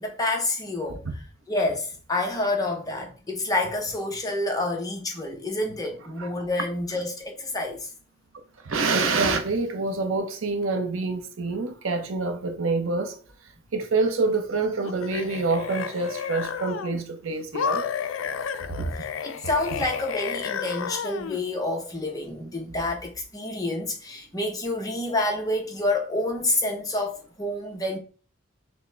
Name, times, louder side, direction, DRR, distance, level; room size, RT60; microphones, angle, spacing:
voice 1, 0.0-1.0 1.5-7.9 19.2-28.0, left 2 dB, 20° left, 0.8 m, -28 dB
voice 2, 8.6-13.2 13.7-17.9 18.6-19.0, right 3 dB, 75° right, 0.7 m, -26 dB
sound 1, 14.8-17.0 17.5-21.4, left 7 dB, 70° left, 0.4 m, -32 dB
6.0 x 2.1 x 3.3 m
head